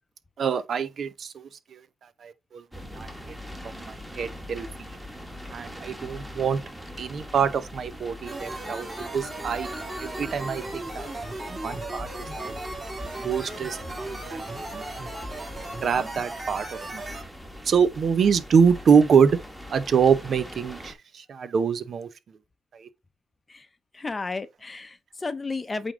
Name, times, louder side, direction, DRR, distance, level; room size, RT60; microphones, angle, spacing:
voice 1, 0.4-1.8 2.2-2.6 2.9-3.4 3.6-4.7 5.5-6.6 7.0-8.9 9.1-9.7 10.0-11.1 11.4-12.6 13.2-14.7 15.8-17.1 17.6-19.4 19.7-22.1 22.7-22.9, right 6 dB, 55° right, 0.7 m, -25 dB
sound 1, 2.7-20.9, left 1 dB, 5° right, 1.6 m, -42 dB
sound 2, 8.3-17.2, right 2 dB, 25° right, 2.5 m, -36 dB
voice 2, 23.9-25.9, left 3 dB, 25° left, 0.7 m, -33 dB
8.5 x 3.6 x 3.6 m
cardioid pair, 90°, 0 cm